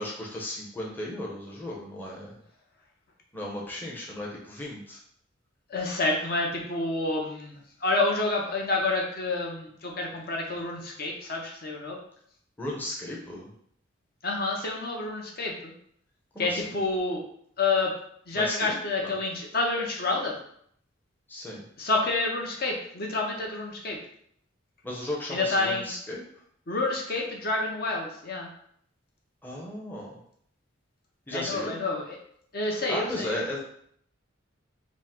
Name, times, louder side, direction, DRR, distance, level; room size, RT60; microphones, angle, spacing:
voice 1, 0.0-2.4 3.3-5.0 12.6-13.5 16.3-16.6 18.3-18.8 21.3-21.6 24.8-26.2 29.4-30.1 31.3-31.8 32.9-33.6, left 1 dB, 10° left, -4 dB, 0.6 m, -35 dB
voice 2, 5.7-12.0 14.2-15.7 16.4-17.2 17.6-17.9 18.3-20.4 21.8-24.0 25.3-25.9 26.7-28.5 31.3-32.2 32.5-33.4, left 2 dB, 50° left, 0 dB, 0.7 m, -28 dB
5.0 x 2.0 x 3.6 m, 0.66 s
head